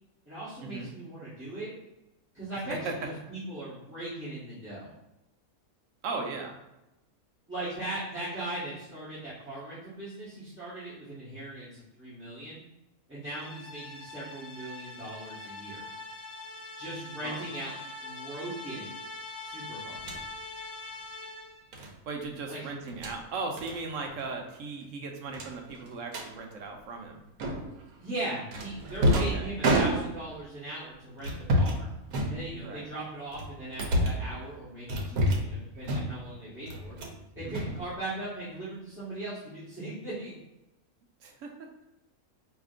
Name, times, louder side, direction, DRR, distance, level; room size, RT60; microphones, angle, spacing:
voice 1, 0.3-1.7 2.3-4.9 7.5-12.6 13.1-15.8 16.8-17.7 18.0-18.9 19.4-20.2 22.5-22.6 28.0-31.9 32.3-37.0 37.3-40.4, right 1 dB, 10° right, -14 dB, 1.2 m, -39 dB
voice 2, 6.0-6.6 17.2-17.4 22.1-27.2 29.1-29.5 32.6-32.8 37.4-37.7 41.2-41.7, right 3 dB, 70° right, 2 dB, 1.0 m, -37 dB
sound 1, 13.2-21.7, left 2 dB, 75° left, 1.1 m, -43 dB
sound 2, 19.9-20.2 21.7-21.9 22.8-23.2 23.6-23.8 24.0-24.3 24.5-24.6 25.3-26.3 27.4-27.8 28.5-30.4 31.2-31.8 32.1-32.8 33.3-34.3 34.9-35.5 35.8-36.3 36.7-37.2 37.5-38.3, equal, 85° right, 1.2 m, -29 dB
4.8 x 2.8 x 2.5 m, 0.94 s
omnidirectional pair, 1.5 m